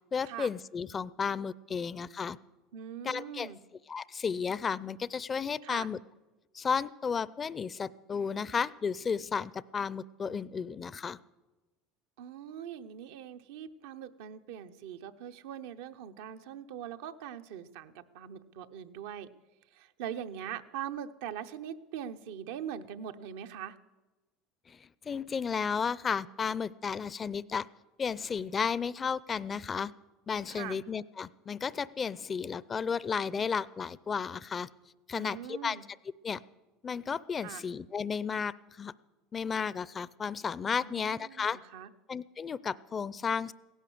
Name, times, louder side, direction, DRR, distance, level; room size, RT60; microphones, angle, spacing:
voice 1, 0.1-2.4 3.0-3.5 3.9-6.0 6.5-11.2 24.7-27.7 28.0-29.9 30.3-34.7 35.1-35.8 36.2-36.4 36.8-38.9 39.3-41.6 42.1-43.5, left 6 dB, 30° left, 20 dB, 0.5 m, -33 dB
voice 2, 2.7-3.6 5.6-5.9 12.2-19.3 19.7-23.8 30.5-30.8 35.1-35.8 37.4-37.6 40.8-41.9, right 9 dB, 80° right, 9 dB, 0.8 m, -42 dB
16.0 x 11.0 x 7.8 m, 1.1 s
supercardioid pair, 90°, 0 cm